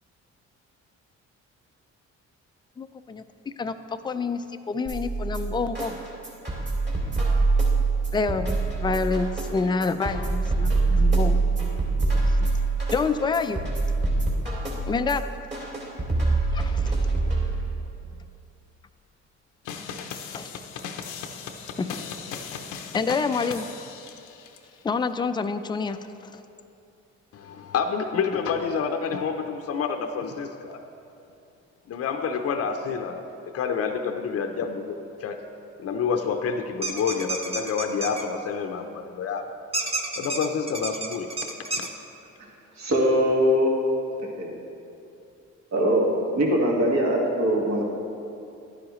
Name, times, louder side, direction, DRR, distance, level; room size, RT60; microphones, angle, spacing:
voice 1, 2.8-3.2 3.6-6.0 8.1-11.4 12.1-12.5 12.9-13.6 14.8-15.2 16.5-17.1 20.1-20.5 21.8-22.0 22.9-23.7 24.8-26.4, left 4 dB, 15° left, 9 dB, 0.4 m, -28 dB
sound 1, 4.9-17.8, right 3 dB, 35° right, 2.5 m, -25 dB
sound 2, 19.7-24.6, left 6 dB, 90° left, 0.7 m, -37 dB
voice 2, 27.3-30.8 31.9-33.2 33.5-35.4 35.8-39.4 40.2-41.5 41.8-41.9, left 6 dB, 50° left, 5 dB, 0.6 m, -28 dB
sound 3, 36.8-38.2 39.7-41.9, right 2 dB, 20° right, 0.8 m, -30 dB
voice 3, 42.8-43.8 44.4-44.5 45.7-46.1 46.3-47.8, equal, 60° right, -2 dB, 1.9 m, -21 dB
11.5 x 9.8 x 3.1 m, 2.7 s
cardioid pair, 90°, 30 cm